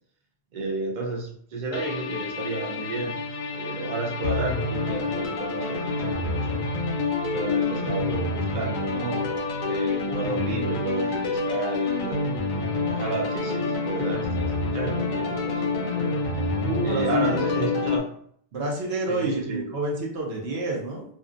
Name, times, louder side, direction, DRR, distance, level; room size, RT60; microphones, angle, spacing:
voice 1, 0.5-6.6 7.3-12.3 12.9-16.5 16.8-18.1 19.1-19.7, right 3 dB, 50° right, -1 dB, 0.7 m, -32 dB
sound 1, 1.7-18.0, left 3 dB, 60° left, 0.6 m, -27 dB
voice 2, 16.6-17.5 18.5-21.0, right 2 dB, 75° right, -1 dB, 0.9 m, -29 dB
2.6 x 2.2 x 2.4 m, 0.62 s
omnidirectional pair, 1.1 m